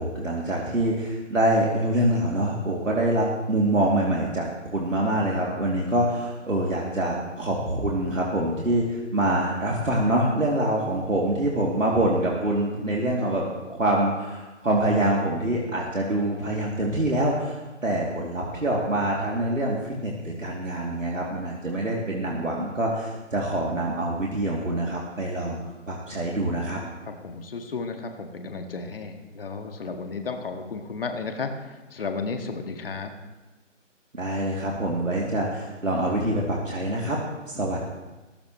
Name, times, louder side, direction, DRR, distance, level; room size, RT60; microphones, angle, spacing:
voice 1, 0.0-13.4 13.7-25.6 25.9-26.8 34.1-37.2 37.4-37.8, right 1 dB, 90° right, -3 dB, 2.8 m, -25 dB
voice 2, 12.8-13.5 27.1-33.1, left 4 dB, 45° left, 5 dB, 1.8 m, -34 dB
19.0 x 15.0 x 3.1 m, 1.1 s
figure-of-eight pair, 150°, 38 cm